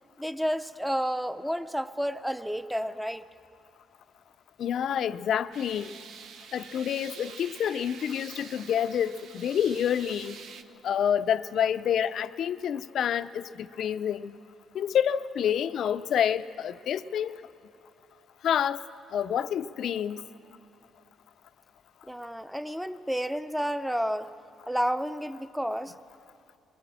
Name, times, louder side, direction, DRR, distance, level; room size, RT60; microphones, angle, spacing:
voice 1, 0.2-3.2 22.0-24.3 24.7-25.9, equal, ahead, 0.7 m, -30 dB
voice 2, 4.6-6.0 6.5-10.4 10.8-14.4 14.7-17.3 18.4-18.8 19.1-20.2, left 9 dB, 70° left, 0.5 m, -28 dB
sound 1, 5.5-10.6, right 6 dB, 75° right, 0.9 m, -47 dB
21.5 x 18.5 x 7.5 m
cardioid pair, 90°, 0 cm